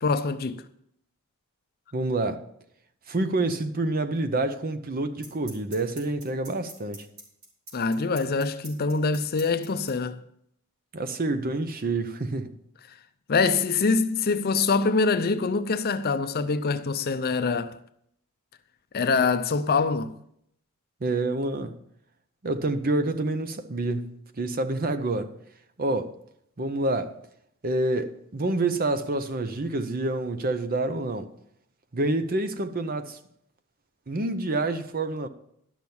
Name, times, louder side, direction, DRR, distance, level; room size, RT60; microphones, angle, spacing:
voice 1, 0.0-0.6 7.7-10.2 13.3-17.8 18.9-20.2, left 4 dB, 45° left, 0.5 m, -24 dB
voice 2, 1.9-2.4 3.1-7.1 10.9-12.5 21.0-21.8 22.4-25.3 25.8-26.1 26.6-27.1 27.6-31.3 31.9-33.2 34.1-35.3, right 2 dB, 40° right, 0.7 m, -27 dB
sound 1, 4.1-4.2 5.2-9.9, right 2 dB, 70° right, 3.6 m, -43 dB
12.0 x 6.2 x 7.0 m
head